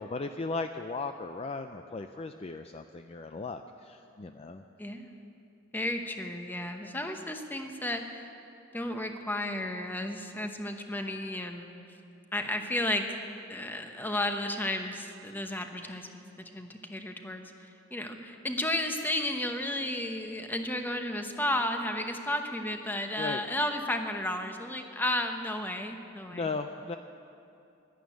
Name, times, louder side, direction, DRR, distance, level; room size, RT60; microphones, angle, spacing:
voice 1, 0.0-4.6 23.2-23.4 26.3-27.0, left 3 dB, 30° left, 7 dB, 0.4 m, -36 dB
voice 2, 4.8-5.3 5.7-8.3 8.7-11.7 12.3-13.2 13.5-16.2 16.5-26.5, left 1 dB, 10° left, 5 dB, 1.0 m, -33 dB
11.5 x 11.5 x 9.2 m, 2.7 s
head